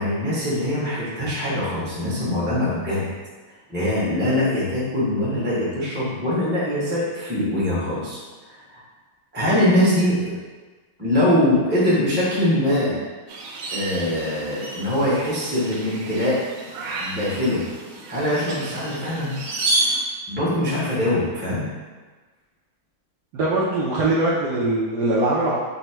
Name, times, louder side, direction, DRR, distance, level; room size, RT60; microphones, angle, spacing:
voice 1, 0.0-3.0 3.7-8.2 9.3-10.4 11.0-13.0 13.7-16.4 17.0-17.6 18.1-19.3 20.3-21.7, left 1 dB, 10° right, -9 dB, 0.5 m, -22 dB
sound 1, 13.3-20.0, right 2 dB, 90° right, 1.4 m, -30 dB
voice 2, 23.3-25.6, right 2 dB, 70° right, -6 dB, 1.0 m, -21 dB
4.1 x 2.1 x 4.4 m, 1.3 s
omnidirectional pair, 2.2 m